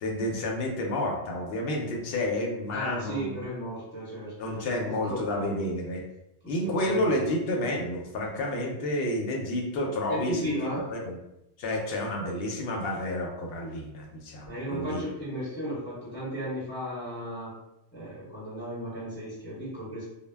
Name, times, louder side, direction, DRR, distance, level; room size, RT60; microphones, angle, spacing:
voice 1, 0.0-3.4 4.4-6.1 6.5-11.2 11.6-15.0, left 1 dB, 65° left, 1 dB, 0.7 m, -30 dB
voice 2, 2.7-5.6 6.6-7.3 10.1-10.9 14.4-17.5 17.9-20.0, equal, 10° left, -9 dB, 1.0 m, -35 dB
2.2 x 2.1 x 3.3 m, 0.87 s
omnidirectional pair, 1.2 m